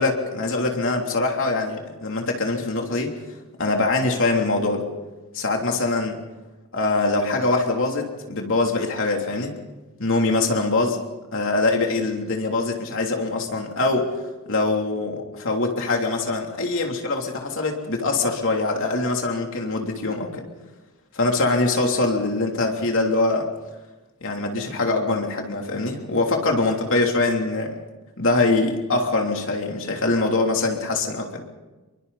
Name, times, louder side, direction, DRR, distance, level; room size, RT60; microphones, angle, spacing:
voice 1, 0.0-3.1 3.6-4.8 5.3-6.2 6.7-9.5 10.0-11.0 11.3-14.2 14.5-20.4 21.1-23.5 24.2-27.8 28.2-31.4, left 2 dB, 60° left, 2 dB, 3.2 m, -23 dB
27.5 x 23.5 x 4.2 m, 1.1 s
head